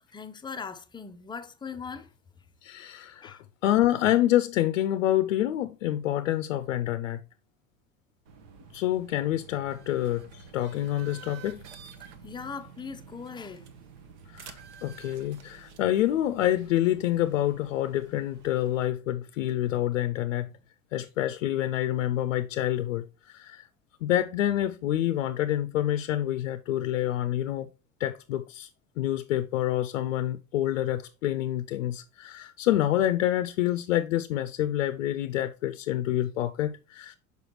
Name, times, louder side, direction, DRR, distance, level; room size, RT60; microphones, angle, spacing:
voice 1, 0.1-2.1 3.2-3.4 12.2-13.6, left 5 dB, 10° left, 0.5 m, -39 dB
voice 2, 2.6-7.2 8.7-11.6 14.3-14.5 14.8-20.5 20.9-23.7 24.0-27.7 28.0-28.7 29.0-37.2, left 13 dB, 65° left, 0.5 m, -27 dB
sound 1, 8.3-18.9, right 6 dB, 60° right, 1.0 m, -50 dB
6.3 x 5.2 x 3.0 m
figure-of-eight pair, 70°, 39 cm